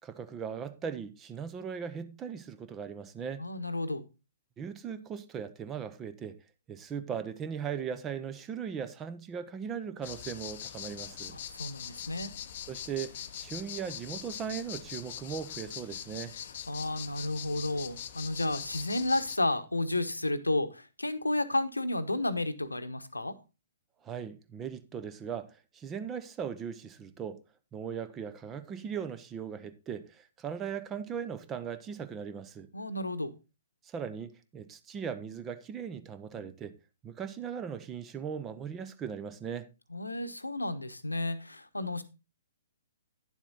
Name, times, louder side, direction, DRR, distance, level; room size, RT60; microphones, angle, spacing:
voice 1, 0.0-3.4 4.6-6.4 6.7-11.3 12.7-16.4 24.0-27.4 27.7-32.7 33.8-36.7 37.0-39.7, right 7 dB, 15° right, 0.8 m, -38 dB
voice 2, 3.4-4.0 11.3-12.3 16.7-23.4 32.7-33.3 39.9-42.0, left 2 dB, 80° left, 1.0 m, -32 dB
sound 1, 10.0-19.4, left 10 dB, 45° left, 0.7 m, -42 dB
10.5 x 7.2 x 3.9 m
figure-of-eight pair, 125°, 0 cm